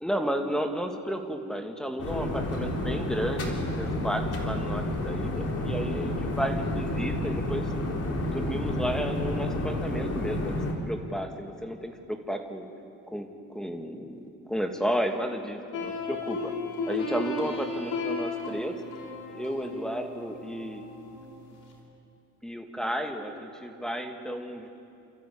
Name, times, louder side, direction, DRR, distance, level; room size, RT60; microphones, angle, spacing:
voice 1, 0.0-3.4 3.8-7.6 8.2-10.6 10.9-12.7 13.1-16.5 16.9-18.7 19.3-20.8 22.4-24.7, equal, ahead, 4 dB, 2.3 m, -32 dB
sound 1, 2.0-10.7, left 1 dB, 55° left, 3.7 m, -30 dB
sound 2, 15.7-21.8, left 3 dB, 85° left, 4.0 m, -35 dB
30.0 x 13.5 x 8.7 m, 2.6 s
cardioid pair, 90°, 30 cm